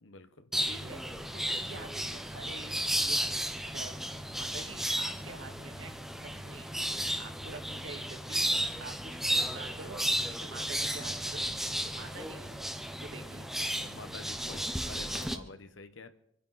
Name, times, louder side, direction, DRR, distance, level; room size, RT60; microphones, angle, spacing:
voice 1, 0.0-0.5 11.8-11.9 13.7-16.1, left 3 dB, 75° left, 10 dB, 1.1 m, -49 dB
sound 1, 0.5-15.4, equal, ahead, 0.8 m, -34 dB
voice 2, 0.7-1.0 1.3-4.0 4.3-6.7 7.1-8.5 8.8-11.5 11.9-12.5 13.0-13.4, right 3 dB, 80° right, 3 dB, 2.3 m, -47 dB
26.0 x 10.0 x 4.2 m, 0.78 s
head